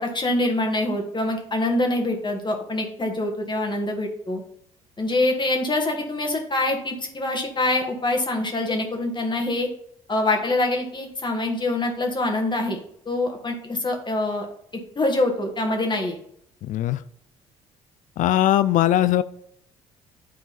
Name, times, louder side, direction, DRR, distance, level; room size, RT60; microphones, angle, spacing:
voice 1, 0.0-4.4 5.0-9.7 10.1-12.8 13.0-14.5 14.9-16.2, left 2 dB, 30° left, 2 dB, 1.5 m, -25 dB
voice 2, 16.6-17.0 18.2-19.2, left 13 dB, 50° left, 14 dB, 0.4 m, -20 dB
9.4 x 3.8 x 4.1 m, 0.68 s
figure-of-eight pair, 50°, 17 cm